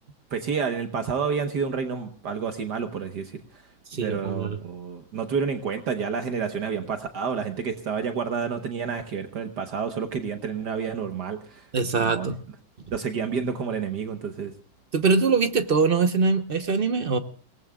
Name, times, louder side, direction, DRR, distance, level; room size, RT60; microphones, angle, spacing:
voice 1, 0.3-3.3 4.0-11.7 12.0-12.3 12.9-14.5, right 6 dB, 60° right, 7 dB, 1.6 m, -29 dB
voice 2, 3.9-4.6 11.7-12.4 14.9-17.2, right 4 dB, 45° right, 10 dB, 0.7 m, -23 dB
28.0 x 18.5 x 2.3 m, 0.44 s
omnidirectional pair, 2.1 m